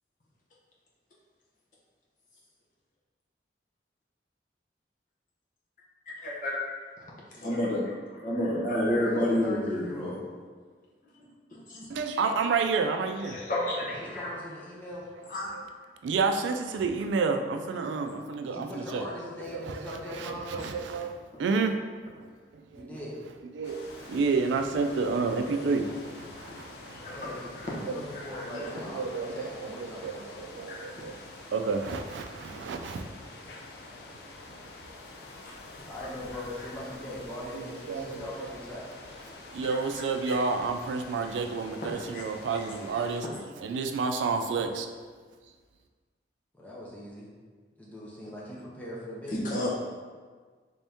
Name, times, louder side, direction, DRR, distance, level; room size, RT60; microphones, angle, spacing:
voice 1, 6.2-6.6 7.3-10.1 11.5-11.9 13.2-14.3 15.3-15.7 20.6-20.7 26.5-26.6 26.9-27.3 27.6-27.8 28.1-28.5 30.7-31.0 35.4-35.5 36.3-36.7 39.6-39.8 40.2-40.4 41.8-42.2 49.3-49.7, left 1 dB, 45° left, -5 dB, 0.8 m, -31 dB
voice 2, 8.9-10.2 14.0-15.0 18.4-20.5 22.7-23.2 24.8-24.9 27.1-27.4 27.8-30.5 35.9-38.9 46.5-47.3 47.8-49.7, left 1 dB, 10° left, -6 dB, 0.6 m, -40 dB
voice 3, 11.9-13.4 16.0-19.1 19.4-21.8 22.2-22.9 23.5-27.2 27.8-28.0 28.5-31.2 31.5-33.1 34.6-34.7 37.5-38.5 39.5-43.2 43.6-44.9, right 4 dB, 90° right, 5 dB, 0.3 m, -30 dB
sound 1, 23.6-43.2, left 2 dB, 65° left, 0.4 m, -47 dB
3.5 x 2.7 x 3.4 m, 1.5 s
head